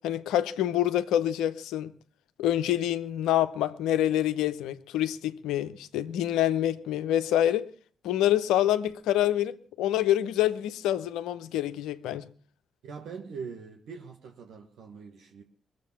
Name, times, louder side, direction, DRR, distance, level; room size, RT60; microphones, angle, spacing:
voice 1, 0.0-1.9 2.4-7.7 8.0-12.3, left 12 dB, 80° left, 0.8 m, -26 dB
voice 2, 12.8-15.4, right 5 dB, 70° right, 1.5 m, -42 dB
21.5 x 7.7 x 7.3 m
hypercardioid pair, 45°, 0 cm